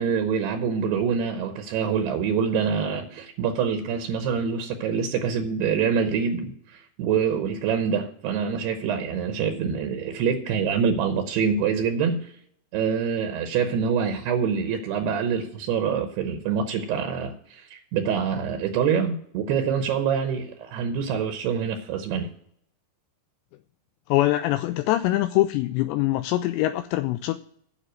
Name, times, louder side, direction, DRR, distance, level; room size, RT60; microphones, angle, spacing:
voice 1, 0.0-12.3 12.7-22.3, right 6 dB, 75° right, 6 dB, 2.8 m, -25 dB
voice 2, 24.1-27.4, left 15 dB, 85° left, 10 dB, 2.6 m, -23 dB
10.0 x 6.3 x 7.7 m, 0.67 s
omnidirectional pair, 5.1 m